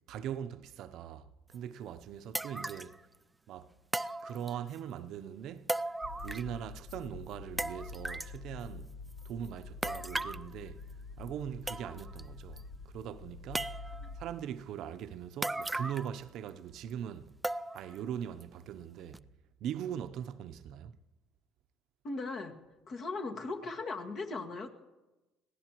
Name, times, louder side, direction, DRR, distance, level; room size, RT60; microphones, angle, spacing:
voice 1, 0.1-3.0 3.5-3.8 4.2-5.7 6.2-9.0 9.2-10.9 11.2-12.7 12.9-13.8 14.1-17.4 17.7-19.2 19.6-21.0, right 9 dB, 65° right, 0.6 m, -41 dB
sound 1, 1.5-1.6 2.3-3.0 3.9-4.8 5.7-6.6 6.9-7.0 7.6-8.4 9.8-10.5 11.3-11.4 11.7-12.2 12.6-12.7 13.5-14.1 15.4-16.2 16.5-16.6 17.4-18.0 18.4-18.5 19.1-19.2, right 2 dB, 10° right, 0.4 m, -37 dB
sound 2, 6.0-14.2, left 4 dB, 75° left, 1.9 m, -47 dB
voice 2, 22.0-22.6 22.9-24.7, left 3 dB, 50° left, 1.9 m, -38 dB
22.5 x 16.5 x 3.0 m
supercardioid pair, 90°, 0 cm